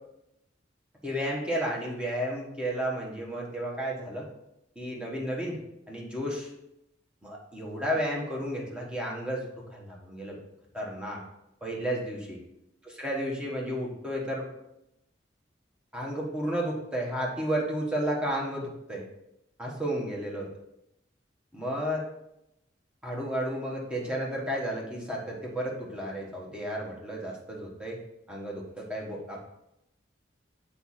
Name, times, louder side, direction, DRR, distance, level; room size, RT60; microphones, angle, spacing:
voice 1, 1.0-4.3 4.7-5.6 5.9-6.5 7.2-10.4 10.7-11.2 11.6-12.4 12.8-14.5 15.9-19.0 19.6-20.5 21.5-22.1 23.0-28.0 28.3-29.4, equal, 5° right, -3 dB, 1.3 m, -32 dB
6.8 x 4.8 x 4.3 m, 0.86 s
head